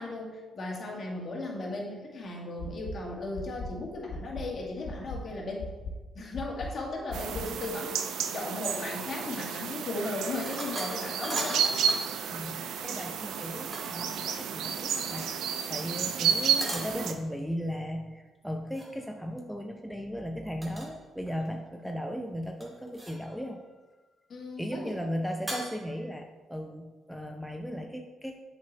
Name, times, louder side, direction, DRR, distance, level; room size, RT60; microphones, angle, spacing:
voice 1, 0.0-5.7 6.1-8.0 8.3-11.7 24.3-25.0, left 2 dB, 45° left, -1 dB, 1.8 m, -36 dB
sound 1, 2.6-2.9 3.3-3.7 4.1-4.4 4.8-5.2 5.6-5.9 6.3-6.7 7.1-7.4, left 3 dB, 80° left, 1.3 m, -37 dB
sound 2, 7.1-17.1, right 7 dB, 80° right, 0.6 m, -31 dB
sound 3, 10.4-12.1 13.4-14.1 16.6-17.0 18.7-19.0 20.6-20.9 21.3-21.9 22.6-23.4 25.5-26.0, equal, 15° right, 2.0 m, -39 dB
voice 2, 12.3-23.6 24.6-28.4, equal, ahead, 4 dB, 0.5 m, -36 dB
7.3 x 4.8 x 4.3 m, 1.3 s
cardioid pair, 90°, 0 cm